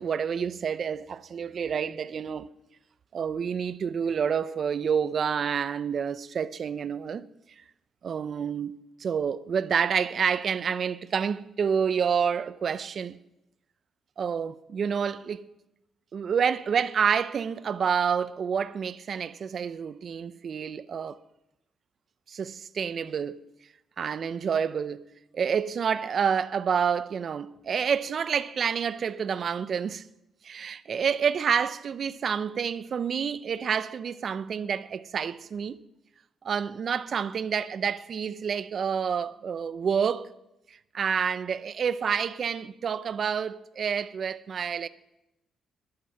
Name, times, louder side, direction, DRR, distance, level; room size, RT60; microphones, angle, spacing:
voice 1, 0.0-2.5 3.1-7.3 7.6-7.7 8.0-13.2 14.2-15.5 16.1-21.2 22.3-23.4 24.0-25.0 25.3-30.0 30.4-35.8 36.4-40.3 40.7-44.9, right 7 dB, 55° right, 0.7 m, -28 dB
21.5 x 8.8 x 5.8 m
cardioid pair, 95°, 0 cm